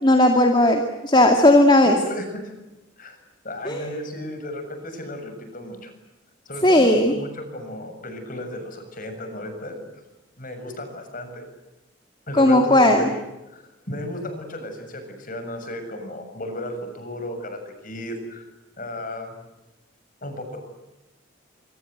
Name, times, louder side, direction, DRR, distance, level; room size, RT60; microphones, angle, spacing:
voice 1, 0.0-2.0 3.7-3.9 6.6-7.1 12.4-13.0, left 1 dB, 20° left, 3 dB, 2.3 m, -16 dB
voice 2, 1.9-2.5 3.0-3.2 3.4-5.9 6.5-9.8 10.4-11.4 12.3-13.2 13.5-18.4 18.8-19.3 20.2-20.6, left 1 dB, 40° left, 7 dB, 6.9 m, -34 dB
26.0 x 26.0 x 8.0 m, 1.0 s
head